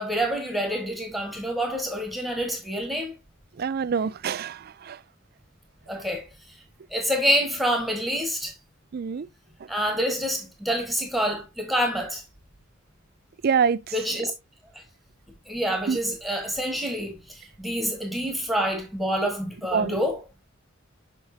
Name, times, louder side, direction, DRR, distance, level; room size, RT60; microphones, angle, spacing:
voice 1, 0.0-3.1 5.9-6.3 6.9-8.5 9.7-12.2 13.9-14.3 15.5-20.2, equal, ahead, 1.6 m, -27 dB
voice 2, 3.6-5.0 8.9-9.3 13.4-13.8 15.9-16.0 19.7-20.0, right 6 dB, 50° right, 0.4 m, -25 dB
6.5 x 5.9 x 2.7 m
head